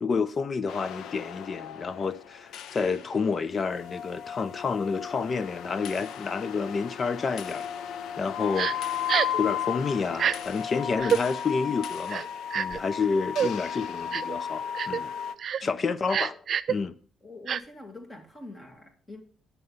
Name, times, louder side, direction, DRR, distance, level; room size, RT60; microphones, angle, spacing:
voice 1, 0.0-7.7 8.2-9.1 9.4-12.2 12.5-15.1 15.6-16.9, left 5 dB, 40° left, 0.6 m, -29 dB
sound 1, 0.7-15.3, left 9 dB, 80° left, 0.6 m, -35 dB
Crying sobbing, 8.6-8.7 9.1-9.4 10.1-10.3 11.0-11.2 12.1-12.8 13.3-13.5 14.1-14.4 14.7-15.0 15.4-15.6 16.1-16.7 17.5-17.6, right 8 dB, 60° right, 0.4 m, -26 dB
voice 2, 17.2-19.2, left 2 dB, 20° left, 2.3 m, -45 dB
10.5 x 6.9 x 5.5 m
cardioid pair, 90°, 0 cm